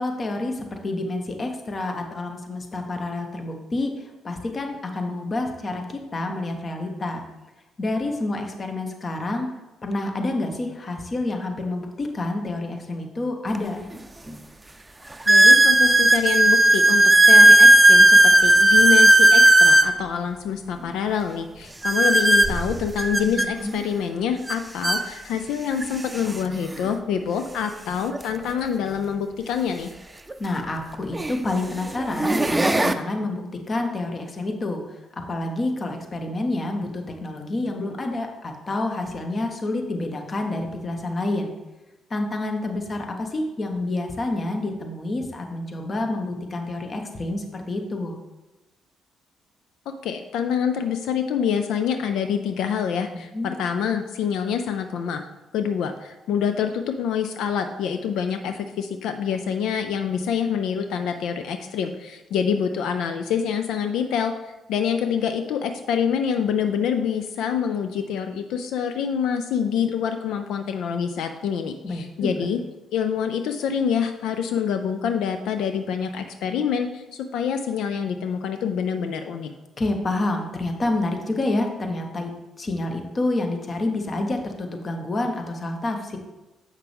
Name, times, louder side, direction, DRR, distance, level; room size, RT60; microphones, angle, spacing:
voice 1, 0.0-7.2 7.8-9.5 9.8-13.8 23.3-23.8 30.4-41.5 42.1-48.1 53.1-53.5 71.8-72.5 79.8-86.2, left 2 dB, 40° left, 3 dB, 1.1 m, -28 dB
sound 1, 13.5-13.6 14.3-14.4 15.3-19.9 21.8-23.5 24.5-24.6 24.8-25.0 25.8-25.9 28.1-28.2 30.3-30.4 31.1-31.4 32.0-32.9, right 1 dB, 20° right, 0.6 m, -14 dB
voice 2, 15.3-29.9 50.0-55.2 55.5-72.6 72.9-79.5, left 7 dB, 75° left, 7 dB, 0.4 m, -26 dB
7.1 x 5.7 x 3.5 m, 1.0 s
hypercardioid pair, 45°, 0 cm